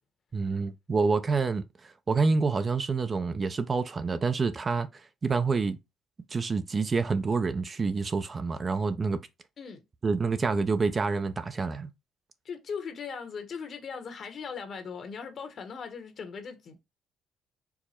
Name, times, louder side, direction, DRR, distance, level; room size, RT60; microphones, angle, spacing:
voice 1, 0.3-4.9 5.2-5.8 6.3-9.2 10.0-11.9, right 4 dB, 35° right, 0.5 m, -27 dB
voice 2, 12.4-16.8, left 6 dB, 55° left, 1.1 m, -39 dB
4.6 x 2.2 x 4.2 m
cardioid pair, 95°, 0 cm